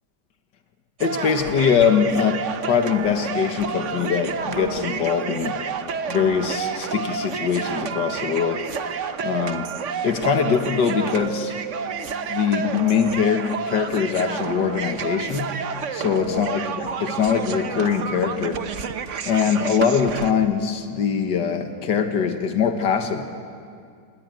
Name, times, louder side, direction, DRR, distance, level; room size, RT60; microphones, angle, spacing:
voice 1, 1.0-5.6 6.1-8.6 9.2-9.6 10.0-11.5 12.3-15.5 15.9-18.6 19.3-23.2, left 7 dB, 75° left, 7 dB, 2.1 m, -22 dB
sound 1, 1.0-20.3, right 6 dB, 50° right, 1.1 m, -30 dB
28.0 x 20.0 x 9.2 m, 2.3 s
omnidirectional pair, 1.9 m